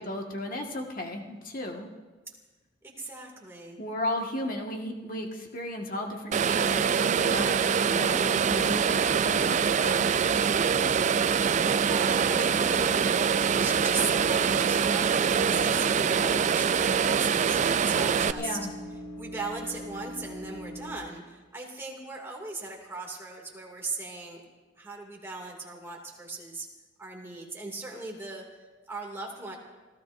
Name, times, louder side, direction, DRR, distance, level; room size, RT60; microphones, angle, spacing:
voice 1, 0.0-1.9 3.8-10.1 18.3-18.7, left 1 dB, 50° left, 1 dB, 1.7 m, -35 dB
voice 2, 2.8-3.8 10.5-11.0 11.3-13.0 13.4-18.6 19.2-24.4 24.8-26.7 27.0-28.4 28.9-29.6, right 3 dB, 15° right, -1 dB, 2.4 m, -38 dB
sound 1, 6.3-18.3, right 7 dB, 40° right, 0.4 m, -24 dB
sound 2, 8.4-9.6 10.1-20.9, equal, 80° left, 3.8 m, -41 dB
29.5 x 15.5 x 2.6 m, 1.3 s
head